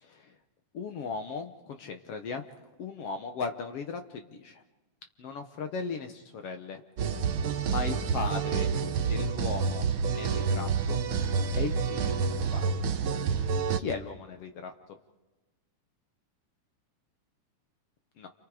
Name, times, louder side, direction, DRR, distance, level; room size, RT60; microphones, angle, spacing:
voice 1, 0.0-0.3 0.7-2.4 2.8-4.6 5.2-6.8 7.2-8.8 9.1-9.9 10.1-11.0 11.6-12.9 13.8-15.0 18.2-18.3, left 5 dB, 60° left, 6 dB, 1.8 m, -37 dB
sound 1, 7.0-13.8, right 5 dB, 65° right, 1.2 m, -28 dB
29.5 x 28.0 x 5.0 m, 1.1 s
omnidirectional pair, 3.6 m